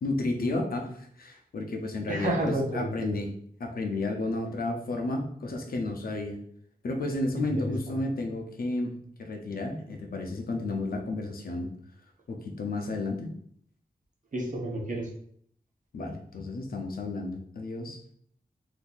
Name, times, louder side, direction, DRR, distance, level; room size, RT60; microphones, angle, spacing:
voice 1, 0.0-3.3 3.6-6.4 6.8-11.7 12.3-13.3 15.9-18.0, left 2 dB, 70° left, 3 dB, 0.6 m, -32 dB
voice 2, 2.1-3.2 7.4-7.7 14.3-15.1, right 1 dB, 55° right, -1 dB, 0.8 m, -31 dB
3.8 x 2.7 x 2.5 m, 0.63 s
wide cardioid pair, 120°, 16 cm